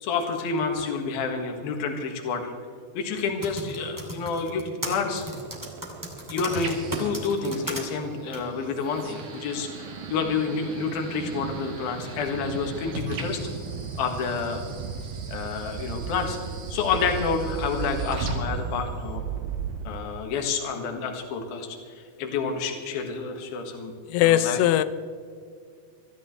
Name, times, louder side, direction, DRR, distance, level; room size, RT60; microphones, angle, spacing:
voice 1, 0.0-2.5 2.9-5.2 6.3-13.4 14.0-14.6 15.3-16.4 16.7-19.2 19.8-23.9 24.2-24.6, left 5 dB, 65° left, 3.3 m, -29 dB
Typing, 3.2-7.8 8.3-8.4, right 1 dB, 10° right, 1.0 m, -35 dB
sound 1, 5.2-19.2, right 2 dB, 55° right, 3.4 m, -41 dB
sound 2, 5.3-20.4, right 7 dB, 90° right, 2.0 m, -37 dB
voice 2, 24.1-24.8, left 13 dB, 85° left, 3.0 m, -20 dB
23.5 x 14.0 x 3.3 m
omnidirectional pair, 5.1 m